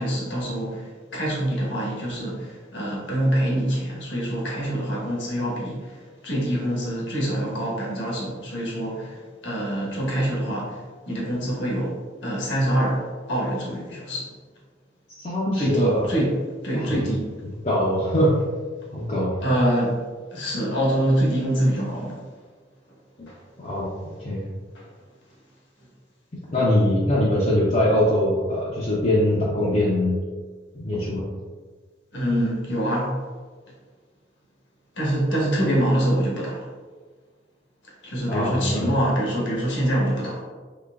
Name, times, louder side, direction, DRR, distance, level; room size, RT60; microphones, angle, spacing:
voice 1, 0.0-14.3 15.6-16.4 16.6-17.3 19.4-20.0 20.3-22.2 23.3-23.4 24.7-24.8 32.1-33.2 34.9-36.7 38.0-40.4, right 1 dB, 80° left, -4 dB, 1.2 m, -25 dB
voice 2, 15.2-16.0 16.7-17.0 17.6-18.3 18.9-19.3 23.2-23.3 23.6-24.4 26.5-30.2 30.7-31.2 38.3-38.9, left 1 dB, 40° left, -8 dB, 0.6 m, -22 dB
3.8 x 3.2 x 2.3 m, 1.5 s
head